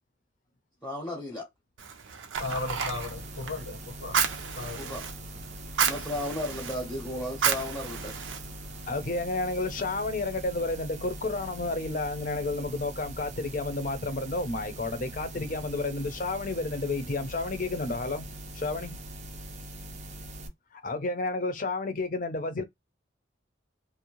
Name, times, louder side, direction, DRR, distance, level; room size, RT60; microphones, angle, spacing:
voice 1, 0.8-1.5 4.8-5.0 5.8-8.1, left 1 dB, 10° left, 0.8 m, -34 dB
Fire, 1.8-9.0, right 7 dB, 85° right, 0.6 m, -32 dB
voice 2, 2.4-4.2 4.5-4.9, left 3 dB, 75° left, 0.8 m, -36 dB
sound 1, 2.4-20.5, right 1 dB, 40° right, 0.5 m, -42 dB
voice 3, 8.9-18.3 18.5-19.0 20.7-22.6, left 2 dB, 45° left, 0.6 m, -31 dB
2.6 x 2.1 x 2.9 m
head